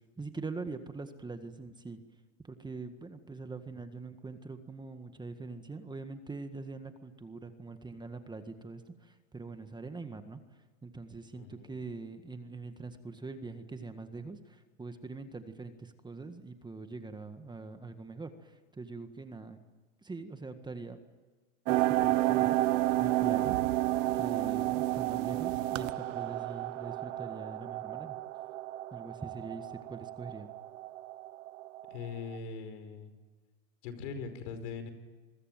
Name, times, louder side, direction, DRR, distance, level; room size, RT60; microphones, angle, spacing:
voice 1, 0.0-2.0 2.4-10.4 10.8-19.6 20.0-21.0 21.7-22.5 23.0-23.6 24.1-28.2 28.9-30.5, right 3 dB, 10° right, 8 dB, 1.7 m, -43 dB
voice 2, 11.3-11.8 31.9-33.1 33.8-34.9, left 5 dB, 70° left, 9 dB, 5.1 m, -41 dB
sound 1, 21.7-32.4, right 16 dB, 75° right, 1.2 m, -31 dB
27.0 x 22.0 x 9.2 m, 1.3 s
supercardioid pair, 120°, 38 cm